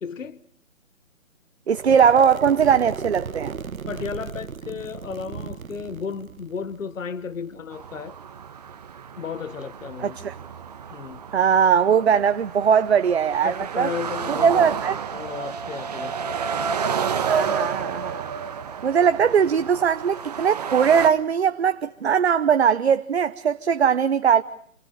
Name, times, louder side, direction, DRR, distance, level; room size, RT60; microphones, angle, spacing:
voice 1, 0.0-0.4 3.9-8.2 9.2-10.2 10.9-11.2 13.4-14.8 15.1-16.3, left 6 dB, 70° left, 1.3 m, -34 dB
voice 2, 1.7-3.5 10.0-10.3 11.3-13.9 14.3-15.0 17.2-18.3 18.8-24.4, right 7 dB, 50° right, 1.0 m, -20 dB
sound 1, 1.7-7.7, right 6 dB, 85° right, 1.2 m, -35 dB
sound 2, 7.7-21.1, right 6 dB, 30° right, 1.3 m, -31 dB
28.5 x 26.0 x 6.6 m
hypercardioid pair, 165°, 40 cm